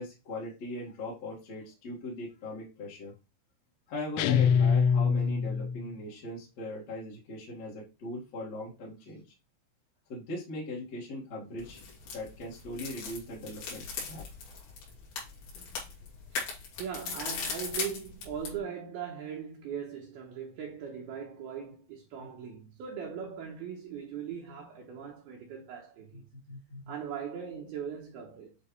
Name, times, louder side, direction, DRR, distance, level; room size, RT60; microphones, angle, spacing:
voice 1, 0.0-3.1 3.9-9.2 10.1-11.8 12.1-14.3 22.2-22.3 26.1-26.2 26.5-26.9, left 1 dB, 45° left, 2.2 m, -40 dB
sound 1, 4.2-5.9, left 7 dB, 80° left, 2.9 m, -24 dB
sound 2, 11.6-18.6, left 5 dB, 65° left, 4.3 m, -39 dB
voice 2, 16.8-26.2 26.9-28.6, right 8 dB, 85° right, 2.2 m, -40 dB
9.6 x 3.9 x 3.2 m
omnidirectional pair, 5.8 m